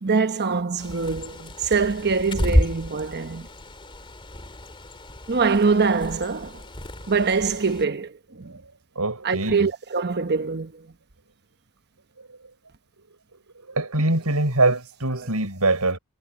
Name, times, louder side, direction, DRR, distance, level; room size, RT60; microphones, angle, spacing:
voice 1, 0.0-3.5 5.3-6.6 7.1-8.5 9.2-10.9, right 4 dB, 50° right, 1.1 m, -24 dB
Bird, 0.8-7.8, equal, 25° left, 3.1 m, -30 dB
voice 2, 9.0-9.7 13.7-16.0, right 2 dB, 90° right, 6.3 m, -23 dB
head